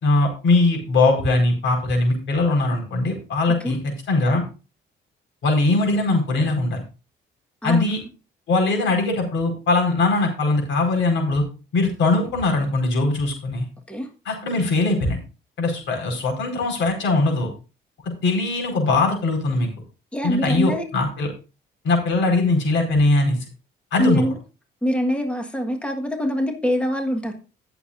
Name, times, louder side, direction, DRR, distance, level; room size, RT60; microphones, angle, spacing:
voice 1, 0.0-4.4 5.4-6.8 7.6-8.0 8.5-11.4 11.7-13.7 14.2-15.2 15.6-17.5 18.2-19.7 20.2-21.3 21.8-23.4 23.9-24.2, left 2 dB, 75° left, 1 dB, 4.7 m, -21 dB
voice 2, 7.6-8.1 13.9-14.1 20.1-20.8 24.0-24.4 24.8-27.3, equal, 5° left, 3 dB, 1.5 m, -24 dB
19.5 x 7.0 x 2.6 m, 0.32 s
cardioid pair, 90°, 20 cm